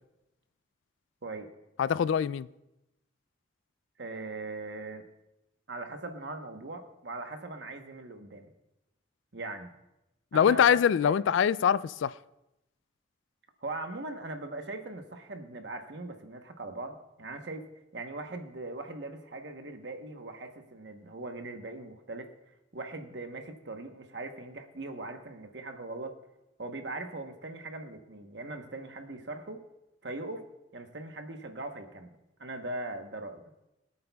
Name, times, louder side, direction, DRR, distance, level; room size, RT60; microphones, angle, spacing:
voice 1, 1.8-2.5 10.3-12.1, left 8 dB, 80° left, 0.3 m, -24 dB
voice 2, 4.0-5.0 5.7-8.5 9.3-9.7 10.3-11.2 13.6-17.6 17.9-22.3 22.7-26.1 26.6-29.6 30.0-30.4 30.7-32.1 32.4-33.4, right 2 dB, 65° right, 1.1 m, -40 dB
23.0 x 8.6 x 2.3 m
head